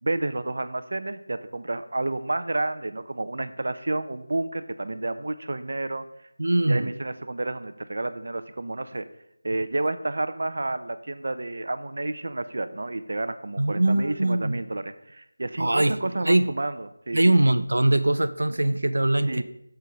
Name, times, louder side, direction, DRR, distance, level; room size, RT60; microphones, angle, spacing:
voice 1, 0.0-6.0 6.7-9.1 9.4-17.2 19.3-19.4, right 2 dB, 45° right, 12 dB, 0.6 m, -30 dB
voice 2, 6.4-6.9 13.6-14.6 15.6-16.0 16.2-16.4 17.1-19.4, right 1 dB, 90° right, 12 dB, 0.7 m, -22 dB
7.1 x 6.9 x 4.9 m, 0.77 s
figure-of-eight pair, 180°, 0 cm